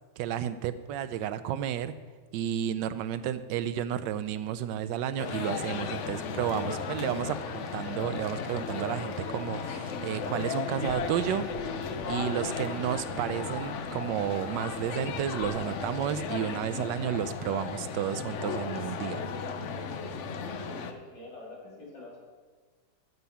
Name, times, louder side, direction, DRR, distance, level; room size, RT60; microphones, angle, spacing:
voice 1, 0.2-1.9 2.3-11.5 12.1-19.2, right 10 dB, 90° right, 12 dB, 1.3 m, -32 dB
sound 1, 5.2-20.9, left 5 dB, 60° left, 0.8 m, -35 dB
Bird, 10.7-16.6, right 4 dB, 65° right, 1.3 m, -53 dB
voice 2, 20.4-22.2, left 2 dB, 80° left, -4 dB, 3.5 m, -46 dB
14.0 x 5.5 x 5.8 m, 1.4 s
omnidirectional pair, 1.9 m